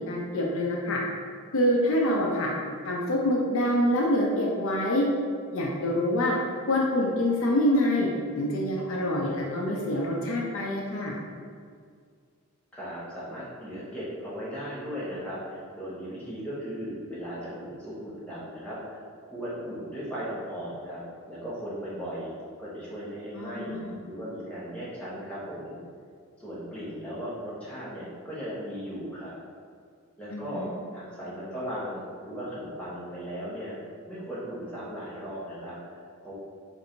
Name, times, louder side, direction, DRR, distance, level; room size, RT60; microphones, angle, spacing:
voice 1, 0.1-1.0 1.5-2.5 2.8-5.1 5.5-6.4 6.7-8.1 8.4-11.1 23.3-24.0 30.3-30.7, left 1 dB, 60° left, -2 dB, 0.5 m, -26 dB
voice 2, 12.7-21.0 21.3-22.3 22.6-23.7 24.0-25.8 26.4-29.3 30.2-30.7 30.9-33.8 34.1-36.3, equal, 5° left, -9 dB, 1.1 m, -37 dB
3.8 x 2.6 x 4.4 m, 2.1 s
head